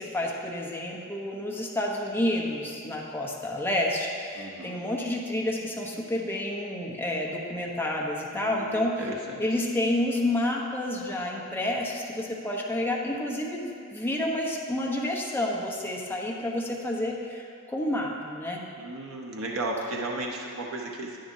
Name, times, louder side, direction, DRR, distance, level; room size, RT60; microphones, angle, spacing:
voice 1, 0.0-8.9 9.4-18.6, left 1 dB, 10° left, -2 dB, 1.0 m, -29 dB
voice 2, 4.3-4.8 8.3-9.6 18.8-21.2, right 2 dB, 75° right, 0 dB, 0.7 m, -35 dB
10.5 x 9.9 x 2.8 m, 2.5 s
head